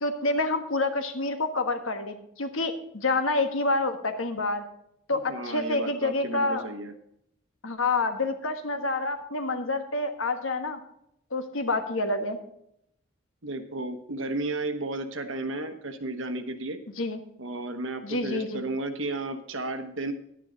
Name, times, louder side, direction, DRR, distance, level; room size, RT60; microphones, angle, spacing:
voice 1, 0.0-4.6 5.1-6.6 7.6-10.8 11.3-12.4 17.0-17.2 18.0-18.6, left 2 dB, 80° left, 7 dB, 1.3 m, -28 dB
voice 2, 5.1-6.9 13.4-16.8 17.4-20.1, right 2 dB, 75° right, 8 dB, 1.1 m, -33 dB
11.0 x 9.9 x 3.9 m, 0.75 s
head